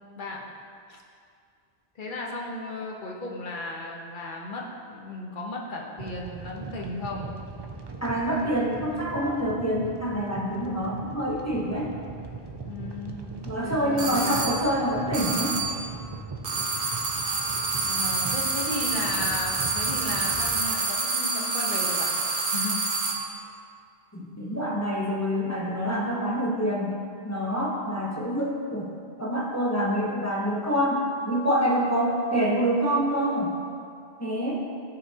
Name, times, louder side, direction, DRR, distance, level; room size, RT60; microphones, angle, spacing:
voice 1, 0.2-0.5 0.9-1.0 2.0-7.4 12.6-13.3 13.6-14.6 17.8-22.9, left 2 dB, 50° left, -1 dB, 1.1 m, -35 dB
sound 1, 6.0-20.7, right 4 dB, 35° right, 0.4 m, -40 dB
voice 2, 8.0-11.9 13.4-15.5 24.1-27.0 27.2-28.9 29.2-33.5 34.2-34.6, equal, 15° left, -4 dB, 0.8 m, -26 dB
sound 2, 14.0-14.7 15.1-15.9 16.4-23.3, right 3 dB, 85° right, 1.1 m, -27 dB
13.0 x 5.9 x 2.8 m, 2.3 s
omnidirectional pair, 1.1 m